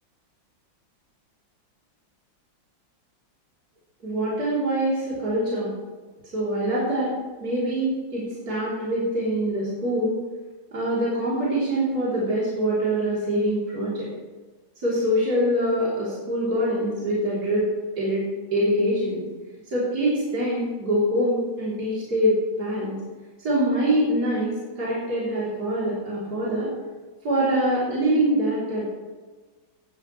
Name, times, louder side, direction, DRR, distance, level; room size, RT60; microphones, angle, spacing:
voice 1, 4.0-5.7 6.3-10.2 10.7-14.1 14.8-17.7 18.0-19.2 19.7-23.0 23.4-26.7 27.2-28.9, right 1 dB, 50° right, -8 dB, 4.0 m, -24 dB
18.0 x 11.0 x 3.2 m, 1.3 s
omnidirectional pair, 2.1 m